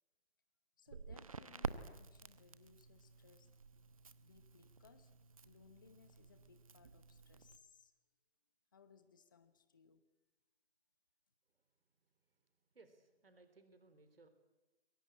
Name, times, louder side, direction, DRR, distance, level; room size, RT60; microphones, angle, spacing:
voice 1, 0.8-3.6 4.2-5.1 5.4-7.9 8.7-10.0, left 6 dB, 20° left, 11 dB, 0.9 m, -65 dB
Crackle, 0.9-7.6, right 5 dB, 30° right, 1.0 m, -50 dB
voice 2, 11.5-14.3, right 3 dB, 55° right, 9 dB, 3.4 m, -66 dB
27.0 x 22.5 x 8.9 m, 1.1 s
figure-of-eight pair, 160°, 33 cm